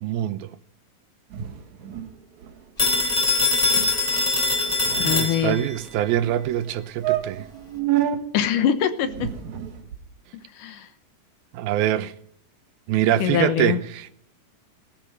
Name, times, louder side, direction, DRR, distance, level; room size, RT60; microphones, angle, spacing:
voice 1, 0.0-0.5 4.9-7.5 11.5-12.1 12.9-14.1, right 12 dB, 85° right, 2.8 m, -24 dB
sound 1, 1.3-2.2 2.4-2.6 2.9-3.1 3.4-3.5 3.7-3.9 4.5-5.6 6.3-6.4 6.7-6.8 7.0-8.2 9.0-10.1, right 12 dB, 60° right, 2.8 m, -28 dB
Telephone, 2.8-5.8, left 3 dB, 10° left, 3.2 m, -22 dB
voice 2, 5.0-5.6 8.3-9.3 10.5-10.9 13.2-13.8, left 9 dB, 70° left, 2.4 m, -23 dB
17.5 x 15.5 x 5.3 m
omnidirectional pair, 4.2 m